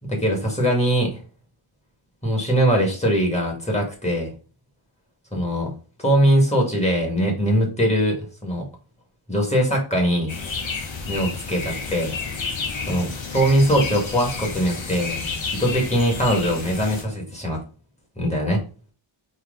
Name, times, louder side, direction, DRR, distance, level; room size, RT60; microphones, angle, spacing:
voice 1, 0.0-1.2 2.2-4.3 5.3-5.7 6.0-8.7 9.3-10.4 11.1-11.6 11.9-12.1 12.9-13.1 13.3-15.2 15.6-17.6 18.2-18.6, equal, 15° left, -1 dB, 1.8 m, -21 dB
sound 1, 10.3-17.0, left 4 dB, 70° left, 1.3 m, -31 dB
4.7 x 2.9 x 3.7 m, 0.38 s
wide cardioid pair, 110°, 49 cm